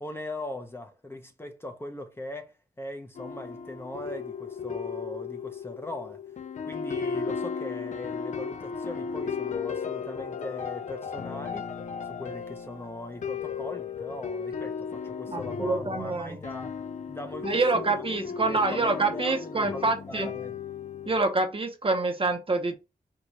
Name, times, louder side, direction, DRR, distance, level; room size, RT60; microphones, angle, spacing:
voice 1, 0.0-6.2 6.6-11.7 12.0-16.7 17.1-20.6, left 1 dB, 15° left, 0.7 m, -40 dB
sound 1, 3.1-21.2, left 6 dB, 50° left, 0.4 m, -35 dB
voice 2, 15.3-16.4 17.4-20.3 21.1-22.8, right 3 dB, 35° right, 0.7 m, -26 dB
4.7 x 2.3 x 4.0 m
wide cardioid pair, 125°, 15 cm